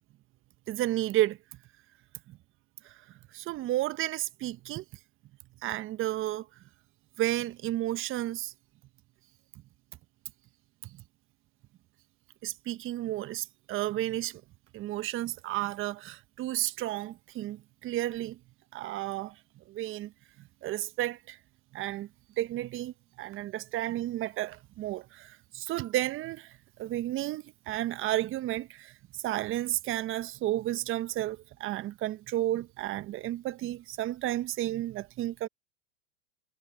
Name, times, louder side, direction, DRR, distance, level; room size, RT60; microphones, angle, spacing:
voice 1, 0.7-1.4 3.3-4.8 5.6-6.4 7.2-8.5 12.4-14.4 14.7-18.4 18.7-19.3 19.7-20.1 20.6-21.4 21.7-22.1 22.4-26.5 26.8-28.9 29.2-35.5, right 14 dB, 30° right, 1.1 m, -32 dB
hypercardioid pair, 110°, 39 cm